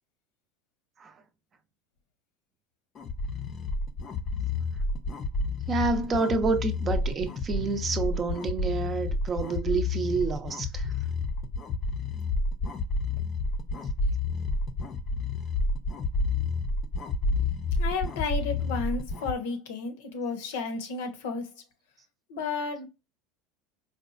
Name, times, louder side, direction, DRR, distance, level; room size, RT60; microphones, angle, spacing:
sound 1, 2.9-19.3, left 3 dB, 40° left, 0.5 m, -30 dB
voice 1, 5.7-10.9, right 4 dB, 35° right, 0.6 m, -28 dB
voice 2, 17.8-21.5 22.3-22.9, left 4 dB, 70° left, 0.7 m, -32 dB
4.1 x 2.3 x 2.4 m
hypercardioid pair, 85°, 0 cm